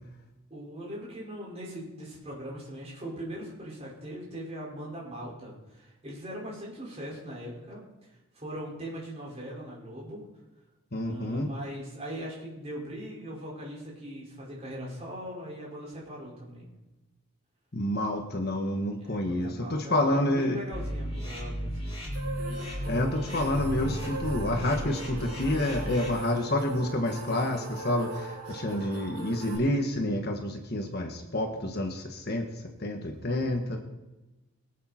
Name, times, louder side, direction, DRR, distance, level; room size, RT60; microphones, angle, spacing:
voice 1, 0.5-7.8 8.1-10.2 11.0-16.7 19.0-22.0 28.5-29.0, equal, 30° right, -4 dB, 5.4 m, -40 dB
voice 2, 10.9-11.5 17.7-20.6 22.9-32.4 32.8-33.8, left 1 dB, 45° left, 3 dB, 1.4 m, -28 dB
sound 1, 20.7-26.1, equal, 25° left, 4.9 m, -34 dB
sound 2, 22.1-29.6, right 2 dB, 70° right, 4.0 m, -40 dB
22.0 x 8.6 x 4.4 m, 1.1 s
head